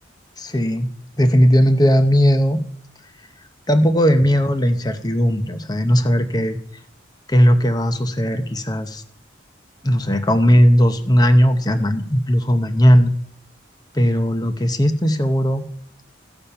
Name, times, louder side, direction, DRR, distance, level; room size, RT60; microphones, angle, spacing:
voice 1, 0.4-0.9 1.2-2.6 3.7-6.6 7.3-9.0 9.8-13.1 13.9-15.6, equal, 20° left, 9 dB, 0.8 m, -17 dB
15.0 x 7.0 x 5.7 m, 0.68 s
head